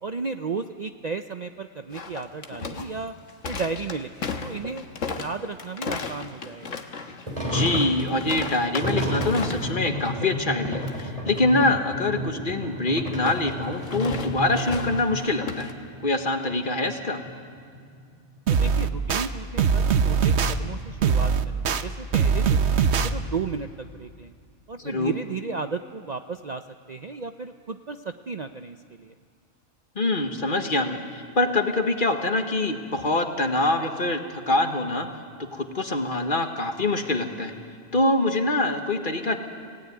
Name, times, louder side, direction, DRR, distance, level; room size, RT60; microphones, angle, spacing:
voice 1, 0.0-3.1 3.5-6.8 18.5-22.7 23.0-24.3 24.7-26.6 26.9-29.1, right 4 dB, 45° right, 7 dB, 0.6 m, -34 dB
sound 1, 1.9-9.8 10.0-10.3 10.6-11.0 13.1-15.7, left 4 dB, 70° left, 1.7 m, -35 dB
sound 2, 7.3-15.7 15.9-16.0 16.5-16.6 17.0-18.6, equal, 25° right, 3.9 m, -31 dB
voice 2, 7.4-15.7 16.0-17.2 24.8-25.1 29.9-35.1 35.5-37.5 37.9-39.4, left 2 dB, 40° left, 5 dB, 1.6 m, -25 dB
sound 3, 18.5-19.3 19.6-20.5 21.0-21.8 22.1-23.1, right 6 dB, 60° right, 1.1 m, -21 dB
25.5 x 17.0 x 9.6 m, 2.2 s
omnidirectional pair, 1.3 m